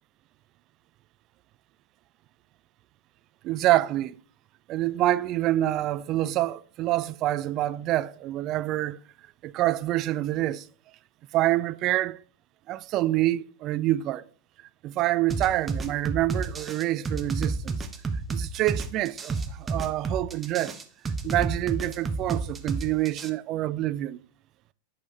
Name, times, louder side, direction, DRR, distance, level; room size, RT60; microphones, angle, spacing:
voice 1, 3.4-4.2 4.7-9.0 9.4-10.7 11.3-12.2 12.7-14.3 14.8-17.8 18.3-20.8 21.2-24.2, right 15 dB, 35° right, 0.3 m, -26 dB
sound 1, 15.3-23.3, right 4 dB, 15° right, 0.7 m, -30 dB
9.5 x 3.3 x 4.0 m
figure-of-eight pair, 90°, 0 cm